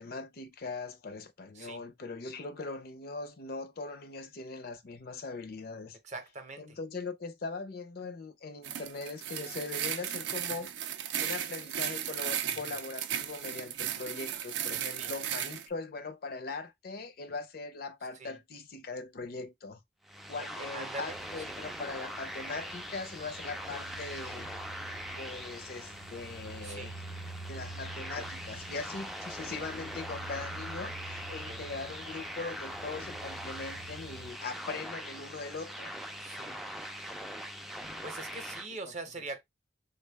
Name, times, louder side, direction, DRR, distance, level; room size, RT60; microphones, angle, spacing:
voice 1, 0.0-6.0 6.6-10.7 11.2-19.8 20.3-24.5 25.2-27.0 27.5-35.9, left 4 dB, 55° left, 0.5 m, -40 dB
voice 2, 6.0-6.8 12.5-12.7 15.0-15.1 18.1-18.4 20.4-21.2 21.5-21.6 26.6-26.9 31.3-31.6 36.2-36.6 38.0-39.4, right 3 dB, 40° right, 0.7 m, -43 dB
sound 1, 8.6-15.7, right 10 dB, 70° right, 0.4 m, -35 dB
sound 2, 20.0-38.7, equal, ahead, 0.3 m, -42 dB
sound 3, 21.1-34.3, right 2 dB, 90° left, 0.9 m, -48 dB
3.4 x 2.2 x 3.3 m
head